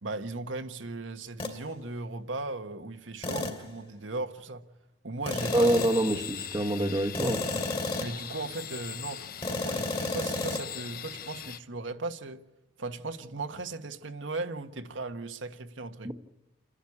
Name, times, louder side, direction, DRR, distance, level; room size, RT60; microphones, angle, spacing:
voice 1, 0.0-4.6 5.0-5.7 7.5-7.6 8.0-12.4 12.8-16.1, right 3 dB, 80° right, 1.4 m, -37 dB
sound 1, 1.4-1.6 3.2-3.7 5.3-6.1 7.1-8.3 9.4-10.6, left 2 dB, 30° left, 2.5 m, -32 dB
sound 2, 5.4-11.6, left 9 dB, 50° left, 0.7 m, -40 dB
voice 2, 5.5-7.4 16.0-16.1, right 1 dB, 20° right, 1.2 m, -26 dB
28.5 x 11.5 x 9.9 m
head